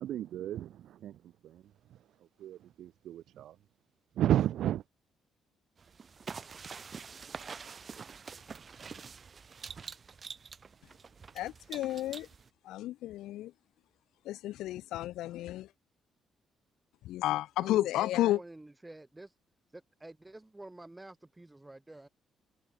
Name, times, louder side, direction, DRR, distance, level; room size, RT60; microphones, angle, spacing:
voice 1, 0.0-0.7 1.0-1.1 2.4-3.5 4.2-4.8, right 12 dB, 75° right, 1.0 m, -31 dB
sound 1, 5.8-12.5, right 5 dB, 40° right, 2.5 m, -46 dB
voice 2, 11.3-12.3 12.6-13.5 14.2-15.7 17.0-18.4, left 15 dB, 90° left, 2.6 m, -32 dB
voice 3, 17.6-19.4 19.7-22.1, right 2 dB, 15° right, 5.5 m, -49 dB
cardioid pair, 90°, 0 cm